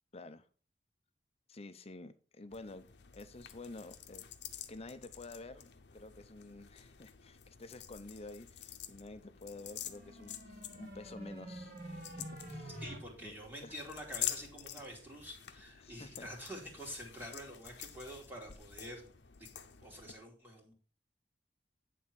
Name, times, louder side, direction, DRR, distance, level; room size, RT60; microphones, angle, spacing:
voice 1, 0.1-0.4 1.5-2.9 3.1-4.2 4.7-12.8 13.2-13.7 15.8-16.3, left 2 dB, 35° left, 0.6 m, -50 dB
sound 1, 2.5-20.1, left 11 dB, 70° left, 0.8 m, -48 dB
sound 2, 9.6-13.0, right 1 dB, 55° right, 2.1 m, -47 dB
voice 2, 12.8-19.1 19.4-19.5 19.8-20.7, equal, 10° right, 2.6 m, -47 dB
9.4 x 3.7 x 6.1 m
head